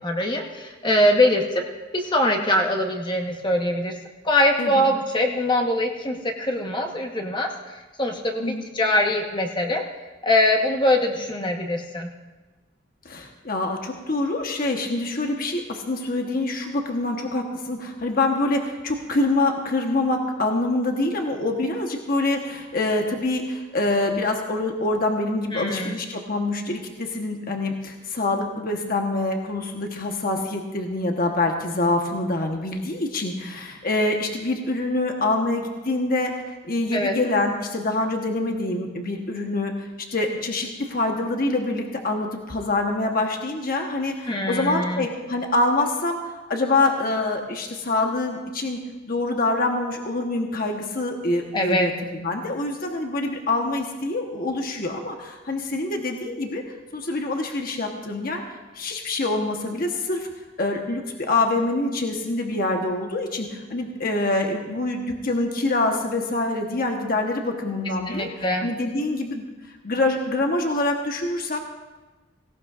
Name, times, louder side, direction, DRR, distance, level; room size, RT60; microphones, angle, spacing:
voice 1, 0.0-1.6 1.9-3.9 4.2-9.8 10.2-12.1 25.5-26.0 36.9-37.1 44.3-45.0 51.5-51.9 68.1-68.7, left 1 dB, 25° left, 2 dB, 1.1 m, -23 dB
voice 2, 13.0-48.8 49.1-56.6 56.9-60.3 60.6-68.3 68.6-69.5 69.8-71.6, left 2 dB, 45° left, 3 dB, 1.1 m, -25 dB
17.5 x 17.0 x 2.5 m, 1.2 s
head